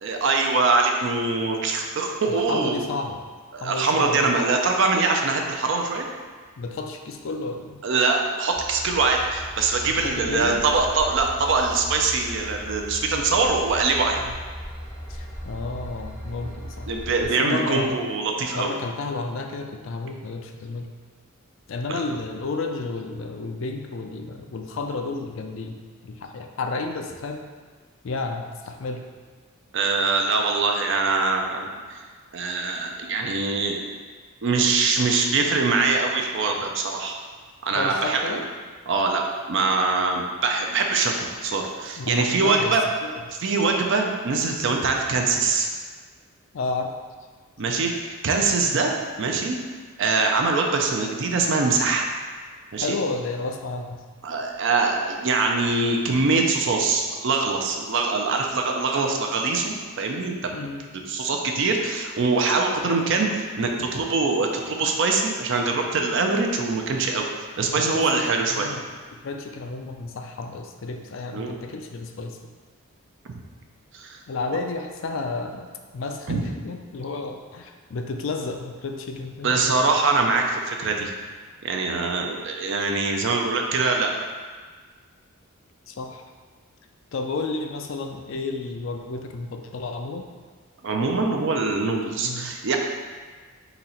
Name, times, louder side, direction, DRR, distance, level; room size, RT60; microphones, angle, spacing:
voice 1, 0.0-2.9 3.5-6.1 7.8-14.2 16.9-18.7 21.9-22.0 29.7-32.0 32.3-33.8 34.4-37.2 37.6-38.4 38.9-39.2 39.5-42.8 43.4-45.7 47.6-48.9 49.2-49.6 50.0-52.1 52.7-53.0 54.2-60.3 61.1-67.3 67.6-68.7 71.3-71.5 73.3-73.4 73.9-74.2 76.3-76.4 79.4-81.1 81.6-84.1 90.8-92.8, right 3 dB, 55° right, 2 dB, 0.5 m, -23 dB
voice 2, 2.3-3.2 3.6-4.4 6.6-7.8 9.9-10.6 14.2-14.4 15.1-16.9 17.2-18.0 18.5-20.9 21.7-27.5 28.0-29.0 37.7-38.4 42.0-42.8 43.0-43.2 46.5-46.9 48.7-48.8 52.8-54.0 60.5-60.9 67.7-68.3 68.5-68.8 69.1-72.4 74.3-75.7 75.9-79.5 85.9-86.2 87.1-90.3 92.2-92.5, left 3 dB, 60° left, 4 dB, 0.4 m, -31 dB
Train / Engine, 8.5-17.2, equal, 35° right, 1.1 m, -38 dB
3.9 x 2.9 x 4.2 m, 1.5 s
head